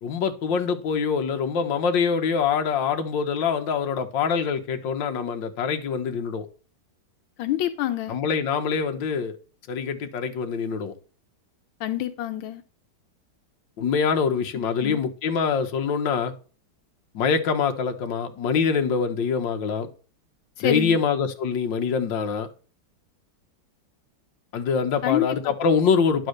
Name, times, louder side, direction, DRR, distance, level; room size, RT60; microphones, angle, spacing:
voice 1, 0.0-6.5 8.1-9.4 9.7-10.9 13.8-16.3 17.1-19.9 20.6-22.5 24.5-26.3, left 6 dB, 70° left, 1.7 m, -24 dB
voice 2, 7.4-8.1 11.8-12.6 14.8-15.0 20.6-21.0 25.0-25.5, left 13 dB, 85° left, 1.5 m, -27 dB
10.5 x 4.2 x 6.5 m
omnidirectional pair, 2.1 m